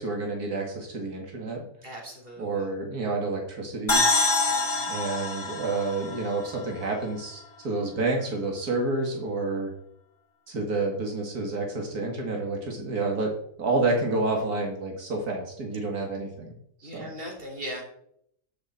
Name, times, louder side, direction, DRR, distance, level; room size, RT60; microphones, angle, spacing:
voice 1, 0.0-1.7 2.4-4.1 4.9-9.7 10.5-13.3 13.6-16.5 16.8-17.1, right 3 dB, 90° right, 1 dB, 2.5 m, -29 dB
voice 2, 1.8-2.6 4.5-5.0 16.8-17.8, equal, 35° right, -1 dB, 3.7 m, -39 dB
sound 1, 3.9-7.4, left 3 dB, 35° left, 1.8 m, -26 dB
13.5 x 6.6 x 4.4 m, 0.69 s
omnidirectional pair, 1.6 m